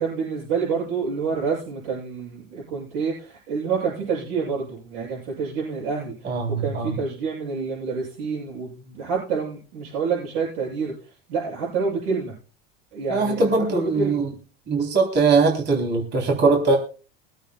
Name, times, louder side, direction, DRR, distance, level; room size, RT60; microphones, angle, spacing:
voice 1, 0.0-12.3 12.9-14.3, right 5 dB, 80° right, -6 dB, 8.0 m, -28 dB
voice 2, 6.2-7.0 13.1-14.3 14.7-16.8, right 4 dB, 35° right, 1 dB, 3.6 m, -21 dB
23.0 x 8.9 x 2.4 m, 0.36 s
hypercardioid pair, 95°, 29 cm